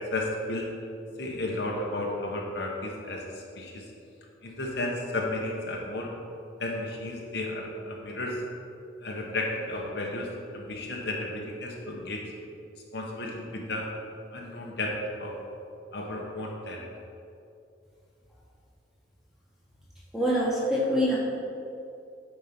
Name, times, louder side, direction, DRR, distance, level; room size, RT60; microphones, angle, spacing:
voice 1, 0.1-0.7 1.2-3.8 4.4-6.1 6.6-8.4 9.0-10.3 10.5-12.2 12.9-13.9 14.3-14.9 15.2-15.3 15.9-16.9, left 2 dB, 60° left, -1 dB, 1.1 m, -33 dB
voice 2, 20.1-21.2, equal, ahead, -6 dB, 1.6 m, -24 dB
8.9 x 4.6 x 5.9 m, 2.7 s
head